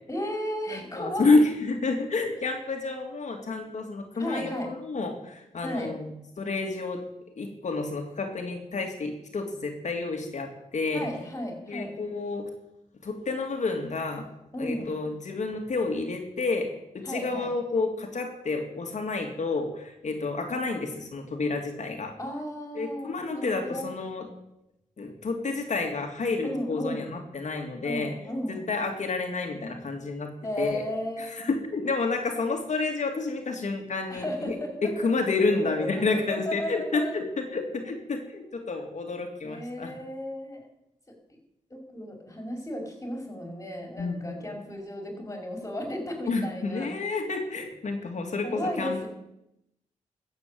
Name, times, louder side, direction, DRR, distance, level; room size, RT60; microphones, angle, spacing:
voice 1, 0.1-1.4 4.2-4.7 5.6-5.9 10.9-11.9 14.5-14.9 17.0-17.5 22.2-23.9 26.4-27.1 27.8-28.6 30.4-31.5 34.1-34.7 35.4-35.9 36.3-37.1 39.4-40.7 41.7-46.9 48.4-49.1, left 1 dB, 20° left, 1 dB, 5.7 m, -34 dB
voice 2, 0.7-6.1 6.4-7.0 7.4-11.1 11.7-12.5 13.0-14.3 14.6-16.7 16.9-22.1 22.7-24.3 25.0-28.1 28.5-30.3 30.6-30.8 31.2-34.6 34.8-39.9 44.0-44.4 46.3-49.1, left 3 dB, 60° left, 3 dB, 2.5 m, -29 dB
13.5 x 8.1 x 8.6 m, 0.86 s
cardioid pair, 70°, 14 cm